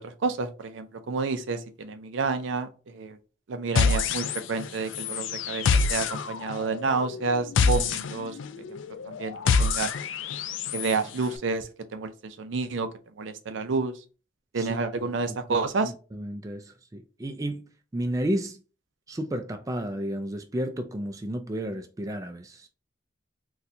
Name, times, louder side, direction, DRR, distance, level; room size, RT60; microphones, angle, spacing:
voice 1, 0.0-3.2 3.5-8.4 8.7-8.8 9.1-9.9 10.7-12.9 13.2-14.0 14.5-15.9, right 4 dB, 75° right, 0.5 m, -30 dB
sound 1, 3.8-4.7 4.9-10.9, left 5 dB, 80° left, 0.4 m, -26 dB
voice 2, 15.5-18.6 19.1-22.7, right 1 dB, 15° right, 0.3 m, -32 dB
4.1 x 2.3 x 2.6 m
head